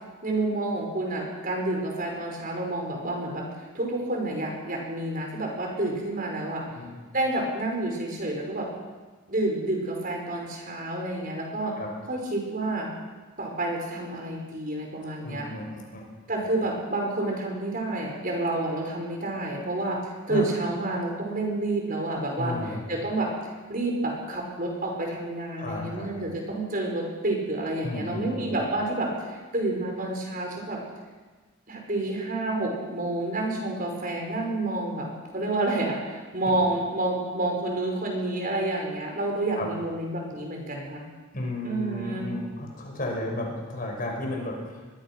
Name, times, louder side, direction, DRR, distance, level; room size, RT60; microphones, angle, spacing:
voice 1, 0.2-6.7 7.1-8.7 9.3-11.8 12.1-12.9 13.4-15.5 16.3-22.6 22.9-23.3 23.7-30.8 31.7-41.0 41.6-42.3, right 2 dB, 40° right, 0 dB, 5.5 m, -29 dB
voice 2, 15.2-16.0 20.3-20.5 22.4-22.8 25.6-26.3 27.8-28.6 39.6-39.7 41.3-44.8, left 1 dB, 40° left, 0 dB, 6.1 m, -33 dB
24.5 x 21.5 x 6.2 m, 1.3 s
head